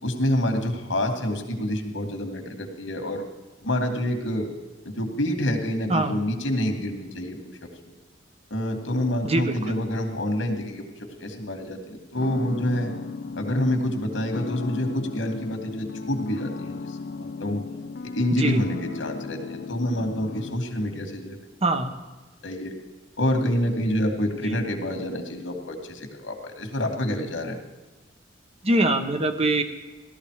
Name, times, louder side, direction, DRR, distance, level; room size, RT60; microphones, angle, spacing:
voice 1, 0.0-3.2 3.6-4.5 4.8-7.5 7.9-8.0 8.5-10.8 11.2-12.9 13.3-17.6 18.1-21.4 22.4-22.7 23.2-27.6, left 1 dB, 90° left, 4 dB, 2.5 m, -27 dB
voice 2, 9.2-9.7 18.4-18.6 21.6-21.9 28.6-29.6, right 2 dB, 35° right, 7 dB, 1.2 m, -23 dB
sound 1, 12.1-20.6, left 4 dB, 60° left, 0.5 m, -36 dB
17.0 x 13.0 x 5.0 m, 1.2 s
head